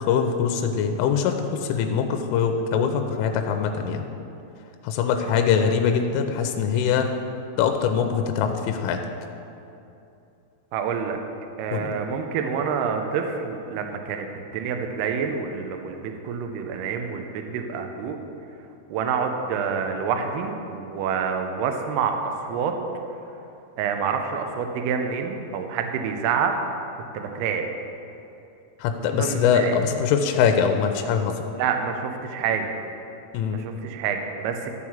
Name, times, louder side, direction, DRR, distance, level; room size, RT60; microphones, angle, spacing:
voice 1, 0.0-4.0 4.8-7.1 7.6-9.0 11.7-11.9 28.8-31.4 33.3-33.6, left 7 dB, 90° left, 6 dB, 3.1 m, -23 dB
voice 2, 10.7-11.2 11.6-18.2 18.9-22.7 23.8-26.5 27.1-27.6 29.1-29.7 31.6-32.7 33.5-34.7, right 6 dB, 85° right, 4 dB, 2.3 m, -27 dB
12.5 x 4.8 x 7.1 m, 2.7 s
omnidirectional pair, 5.6 m